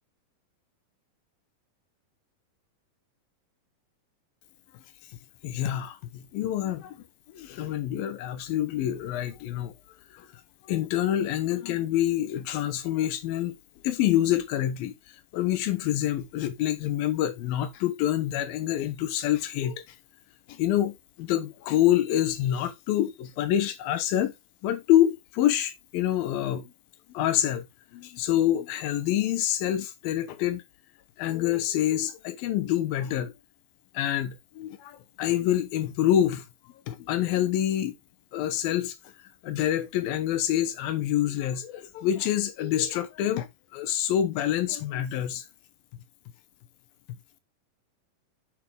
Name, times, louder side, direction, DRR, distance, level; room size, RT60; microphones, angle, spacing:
voice 1, 5.4-7.0 7.3-9.7 10.1-10.3 10.7-13.6 13.8-14.9 15.3-19.8 20.5-24.3 24.6-26.7 27.1-27.7 27.9-30.6 31.2-33.3 33.9-36.5 36.9-37.9 38.3-38.9 39.4-43.5 43.7-45.4, left 12 dB, 90° left, 2.9 m, -26 dB
7.5 x 6.9 x 3.4 m
omnidirectional pair, 4.0 m